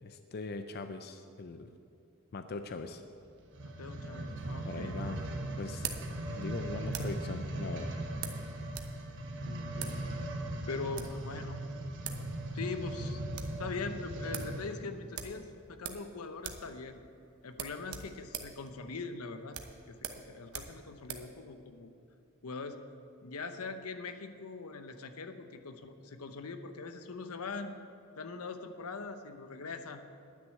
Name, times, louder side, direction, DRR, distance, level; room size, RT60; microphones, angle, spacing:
voice 1, 0.0-1.7 2.3-3.0 4.6-5.2 5.6-5.9 6.2-7.9, left 3 dB, 45° left, 8 dB, 0.5 m, -40 dB
sound 1, 3.4-14.8 15.4-15.5, right 1 dB, 55° right, 1.1 m, -39 dB
voice 2, 3.6-5.0 9.4-10.0 10.7-11.6 12.5-13.2 13.6-17.0 17.4-19.6 19.9-21.9 22.4-22.8 23.2-27.8 28.2-30.1, left 4 dB, 80° left, 9 dB, 0.8 m, -42 dB
sound 2, 4.4-7.3 8.2-9.0 9.2-9.3 9.7-10.0 10.7-11.2 11.8-11.9 12.0-12.3 12.6-12.7 13.0-13.6 13.9-14.0 14.3-14.5 15.1-16.1 16.4-16.7 17.0-17.1 17.5-21.3, right 8 dB, 90° right, 0.9 m, -43 dB
10.5 x 6.3 x 9.1 m, 2.5 s
head